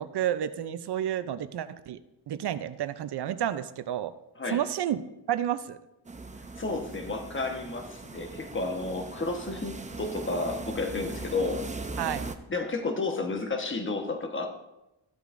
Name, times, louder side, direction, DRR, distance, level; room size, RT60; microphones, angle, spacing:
voice 1, 0.0-2.0 2.3-4.1 4.5-5.0 5.3-5.8 12.0-12.3, right 10 dB, 60° right, 12 dB, 0.6 m, -30 dB
sound 1, 6.0-12.4, right 3 dB, 15° right, 0.6 m, -40 dB
voice 2, 6.6-11.7 12.5-14.5, left 3 dB, 25° left, 5 dB, 1.2 m, -31 dB
14.0 x 8.0 x 2.6 m, 0.93 s
cardioid pair, 85°, 46 cm